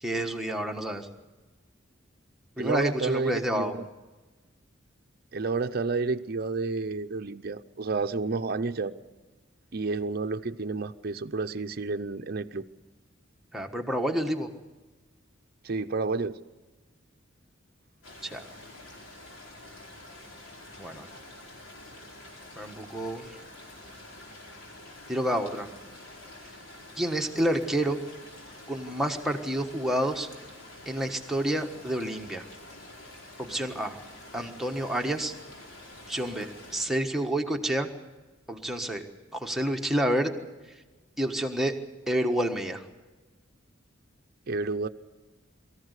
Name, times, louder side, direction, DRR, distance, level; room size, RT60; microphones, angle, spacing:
voice 1, 0.0-1.1 2.6-3.8 13.5-14.5 18.2-18.4 20.8-21.1 22.6-23.3 25.1-25.7 27.0-28.0 28.7-30.3 30.9-32.4 33.4-34.0 34.3-35.3 36.1-37.9 38.5-39.0 39.3-40.3 41.2-41.8 42.1-42.8, right 1 dB, ahead, 2 dB, 1.4 m, -29 dB
voice 2, 2.6-3.9 5.3-8.9 9.7-12.7 15.6-16.4 44.5-44.9, right 3 dB, 50° right, 8 dB, 0.7 m, -30 dB
sound 1, 18.0-36.9, left 1 dB, 90° left, 4.7 m, -47 dB
23.0 x 14.5 x 8.2 m, 1.2 s
head